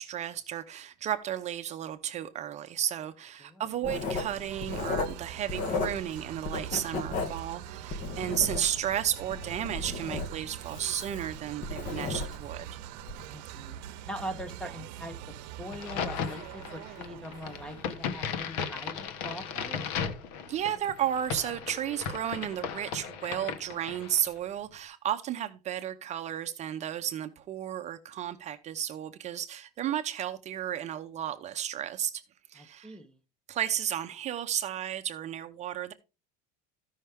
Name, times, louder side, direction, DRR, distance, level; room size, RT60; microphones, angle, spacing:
voice 1, 0.0-12.8 20.5-32.2 32.5-33.0 33.5-35.9, right 10 dB, 35° right, 0.6 m, -33 dB
Writing, 3.8-6.2 6.4-8.9 9.3-12.6 13.0-13.2, left 3 dB, 40° left, 1.1 m, -34 dB
sound 1, 3.9-18.6, right 11 dB, 85° right, 0.7 m, -44 dB
voice 2, 13.3-19.9 32.5-33.2, equal, 5° left, 0.8 m, -42 dB
Crack, 15.7-24.3, left 7 dB, 75° left, 1.2 m, -36 dB
14.5 x 5.6 x 3.5 m
cardioid pair, 155°, 21 cm